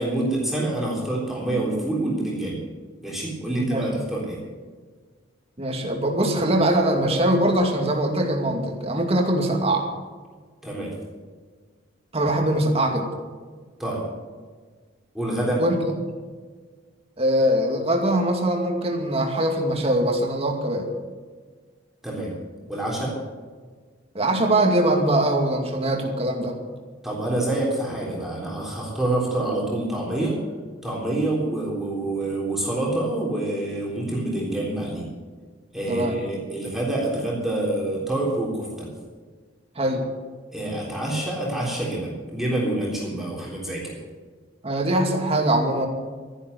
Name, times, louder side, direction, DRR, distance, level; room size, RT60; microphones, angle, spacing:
voice 1, 0.0-2.6 3.0-4.4 10.6-10.9 13.8-14.0 15.1-15.6 22.0-22.3 22.7-23.2 27.0-30.4 30.8-35.1 35.7-38.9 40.5-44.0, right 1 dB, ahead, -5 dB, 3.6 m, -27 dB
voice 2, 3.5-3.8 5.6-9.9 12.1-13.1 15.6-15.8 17.2-20.9 24.1-26.5 35.9-36.2 39.8-40.0 44.6-45.9, right 1 dB, 30° right, 1 dB, 2.4 m, -22 dB
13.5 x 11.0 x 8.1 m, 1.5 s
head